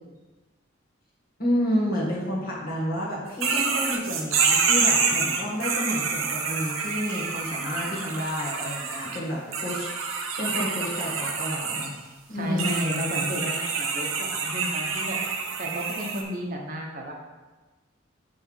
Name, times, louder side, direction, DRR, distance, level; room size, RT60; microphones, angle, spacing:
voice 1, 1.4-9.9 10.4-11.9 12.3-12.9, equal, 45° left, -4 dB, 1.8 m, -30 dB
sound 1, 3.4-9.2 9.5-11.9 12.6-16.2, right 5 dB, 85° right, 0.8 m, -27 dB
voice 2, 12.3-15.2 15.6-17.1, equal, 40° right, 0 dB, 0.9 m, -33 dB
7.1 x 3.4 x 5.5 m, 1.2 s
head